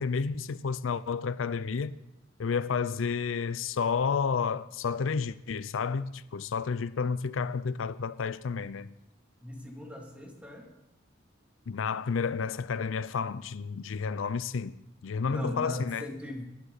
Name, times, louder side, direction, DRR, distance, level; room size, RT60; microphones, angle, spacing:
voice 1, 0.0-2.0 2.4-9.0 11.7-14.7 15.0-16.1, left 5 dB, 90° left, 0.5 m, -31 dB
voice 2, 9.4-10.7 15.3-16.4, left 1 dB, 5° right, 2.6 m, -39 dB
20.0 x 11.0 x 4.1 m
head